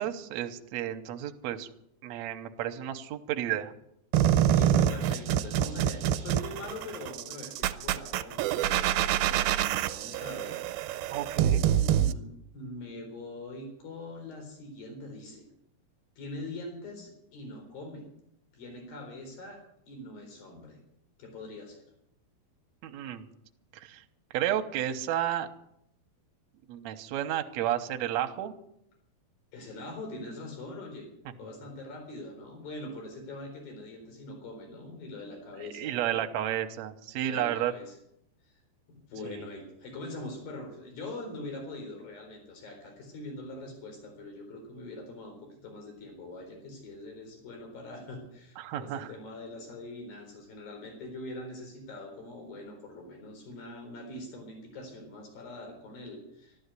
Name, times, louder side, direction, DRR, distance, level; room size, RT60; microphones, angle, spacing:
voice 1, 0.0-1.7 2.0-3.7 11.1-11.7 22.8-23.2 23.8-24.0 24.3-25.5 26.7-28.5 35.6-37.7 39.3-39.4 48.6-49.1, right 11 dB, 65° right, 7 dB, 1.8 m, -32 dB
sound 1, 4.1-12.1, right 11 dB, 85° right, 2.6 m, -26 dB
voice 2, 4.5-12.3 12.5-15.5 16.2-18.1 18.5-19.6 19.9-20.8 21.2-21.8 29.5-31.1 31.4-36.5 37.2-38.0 38.5-38.6 38.9-56.6, left 2 dB, 70° left, 3 dB, 5.8 m, -43 dB
13.0 x 12.5 x 8.3 m, 0.78 s
omnidirectional pair, 4.3 m